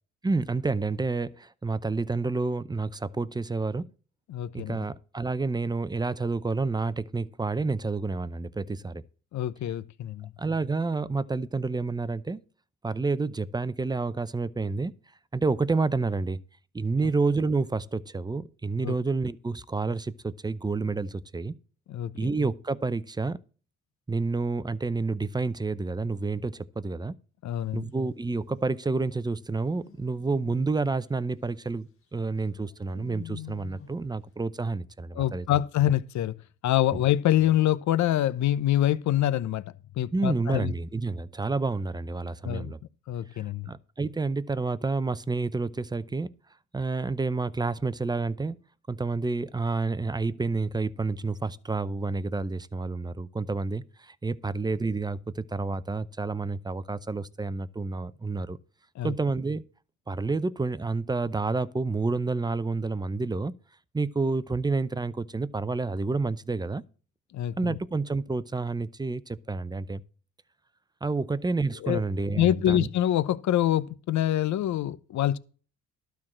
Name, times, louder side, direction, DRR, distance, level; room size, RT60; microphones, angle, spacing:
voice 1, 0.2-3.9 4.5-9.0 10.4-12.4 12.8-14.9 15.3-16.4 16.7-21.5 22.1-23.4 24.1-27.1 27.7-35.5 36.9-37.0 40.1-42.8 43.3-46.3 46.7-48.6 48.9-58.6 59.0-59.6 60.1-63.5 63.9-66.8 67.6-70.0 71.0-72.9, right 3 dB, 15° right, 0.6 m, -29 dB
voice 2, 4.3-4.8 9.3-10.3 18.8-18.9 21.9-22.3 27.4-27.9 35.1-36.4 36.6-39.6 40.0-40.7 42.4-42.7 43.1-43.7 59.0-59.1 67.3-67.7 71.8-72.0 72.4-75.4, left 12 dB, 65° left, 0.8 m, -25 dB
sound 1, 27.7-28.5 29.8-31.1 32.5-34.1, left 7 dB, 45° left, 1.8 m, -46 dB
12.0 x 4.6 x 7.3 m
cardioid pair, 90°, 30 cm